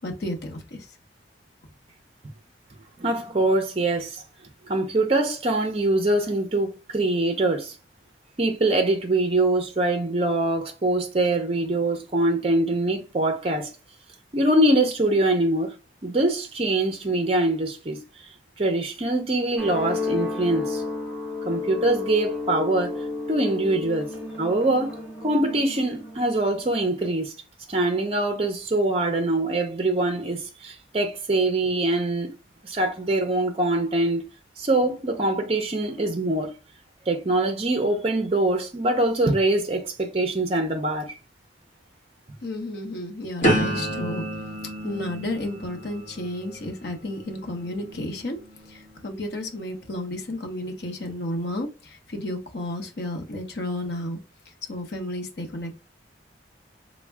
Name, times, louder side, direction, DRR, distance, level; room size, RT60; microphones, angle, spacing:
voice 1, 0.0-0.9 42.4-44.3 44.8-48.4 48.7-54.2 54.7-55.8, left 1 dB, 55° left, 0.7 m, -32 dB
voice 2, 3.0-4.2 4.7-7.7 8.4-13.7 14.3-15.7 16.0-18.0 18.6-20.8 21.5-24.1 24.4-27.3 27.7-32.3 32.6-34.2 34.6-36.5 37.1-41.1, right 2 dB, 30° right, 0.5 m, -23 dB
sound 1, 19.6-27.1, left 3 dB, 5° right, 1.1 m, -32 dB
sound 2, 43.4-49.3 49.8-50.2, right 1 dB, 40° left, 1.1 m, -30 dB
3.5 x 2.1 x 3.3 m
head